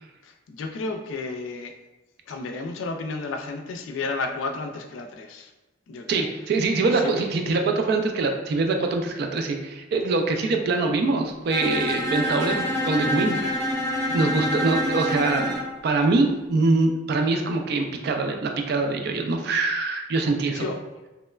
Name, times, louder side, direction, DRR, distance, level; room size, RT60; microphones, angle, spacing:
voice 1, 0.2-1.7 2.3-5.5 5.9-6.3 7.0-7.1 14.1-14.3 20.5-20.8, left 3 dB, 85° left, 5 dB, 0.3 m, -32 dB
voice 2, 6.1-13.4 14.1-15.6 15.8-20.7, right 3 dB, 55° right, 4 dB, 0.3 m, -24 dB
Bowed string instrument, 11.5-15.7, equal, 15° left, 0.6 m, -26 dB
2.9 x 2.1 x 2.2 m, 1.1 s
head